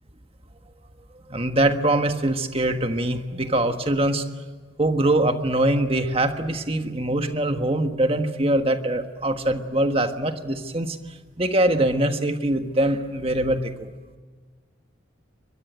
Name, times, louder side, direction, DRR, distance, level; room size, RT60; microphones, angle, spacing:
voice 1, 1.3-4.2 4.8-11.0 11.4-13.9, right 1 dB, 30° right, 7 dB, 1.4 m, -23 dB
24.5 x 22.0 x 9.2 m, 1.4 s
head